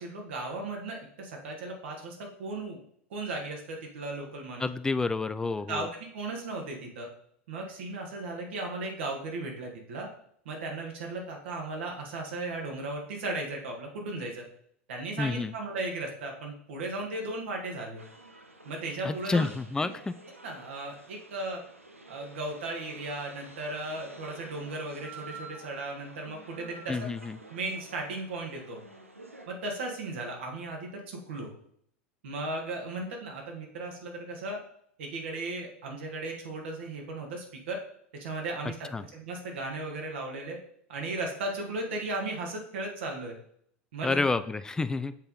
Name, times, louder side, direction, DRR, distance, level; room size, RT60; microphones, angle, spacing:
voice 1, 0.0-2.8 3.1-4.7 5.7-5.9 6.1-7.1 7.5-10.1 10.4-14.4 14.9-18.0 18.6-19.5 19.8-19.9 20.4-21.6 22.1-27.1 27.5-28.8 29.5-31.5 32.2-34.6 35.0-37.8 38.2-40.6 40.9-43.3 43.9-44.2, right 2 dB, 60° right, 1 dB, 1.5 m, -36 dB
voice 2, 4.6-5.9 15.2-15.5 19.0-20.1 26.9-27.4 38.9-39.0 44.0-45.1, left 3 dB, 10° left, 12 dB, 0.3 m, -29 dB
sound 1, 18.0-29.5, right 2 dB, 85° right, 0.6 m, -50 dB
7.2 x 4.1 x 3.7 m, 0.67 s
figure-of-eight pair, 80°, 7 cm